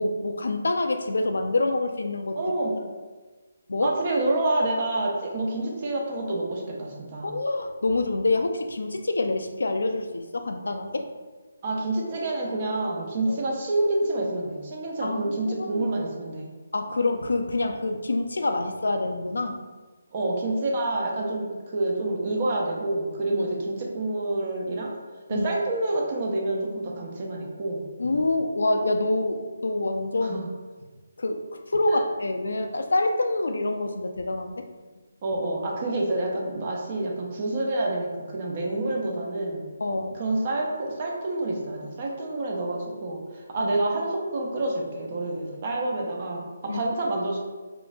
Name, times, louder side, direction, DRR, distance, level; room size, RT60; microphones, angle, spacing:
voice 1, 0.0-2.4 3.7-3.9 7.2-11.1 13.3-13.4 15.0-15.9 16.7-19.6 23.3-23.4 25.3-25.5 28.0-30.4 31.2-31.4 31.7-34.7 39.8-40.2 43.6-43.7 46.7-46.8, left 2 dB, 85° left, 5 dB, 0.3 m, -26 dB
voice 2, 2.4-2.8 3.8-7.3 11.6-16.5 20.1-24.9 25.3-27.8 30.2-30.4 32.0-32.1 35.2-39.6 40.1-47.4, right 2 dB, 35° right, -1 dB, 0.6 m, -28 dB
3.7 x 2.5 x 2.3 m, 1.3 s
hypercardioid pair, 165°, 0 cm